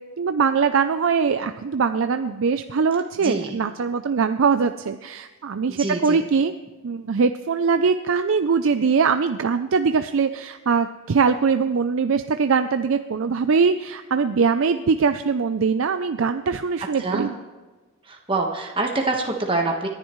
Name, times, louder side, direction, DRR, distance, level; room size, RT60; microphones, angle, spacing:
voice 1, 0.2-6.5 6.8-17.3, right 5 dB, 65° right, 9 dB, 0.4 m, -22 dB
voice 2, 3.2-3.6 5.7-6.2 17.0-17.3 18.1-19.9, right 2 dB, 25° right, 1 dB, 1.3 m, -25 dB
28.5 x 10.5 x 3.1 m, 1.3 s
head